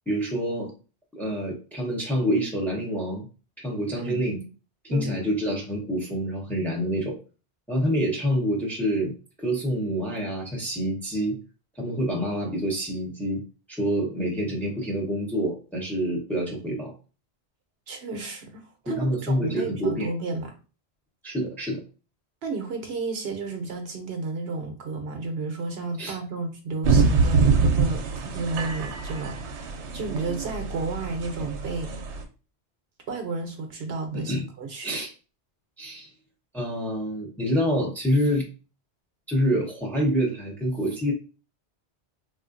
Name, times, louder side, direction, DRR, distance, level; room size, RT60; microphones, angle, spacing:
voice 1, 0.1-0.7 1.1-3.3 3.6-4.4 4.8-7.2 7.7-9.1 9.4-11.4 11.8-13.4 13.7-16.9 18.9-20.1 21.2-21.8 26.0-26.2 34.1-34.4 34.8-35.1 35.8-36.1 36.5-38.4 39.3-41.1, equal, ahead, -1 dB, 0.7 m, -27 dB
voice 2, 4.0-4.5 4.9-5.2 17.9-20.5 22.4-31.9 33.1-34.9, right 3 dB, 65° right, 4 dB, 0.9 m, -32 dB
sound 1, 26.8-32.2, right 4 dB, 85° right, 0.9 m, -24 dB
3.5 x 2.5 x 2.5 m, 0.34 s
omnidirectional pair, 1.2 m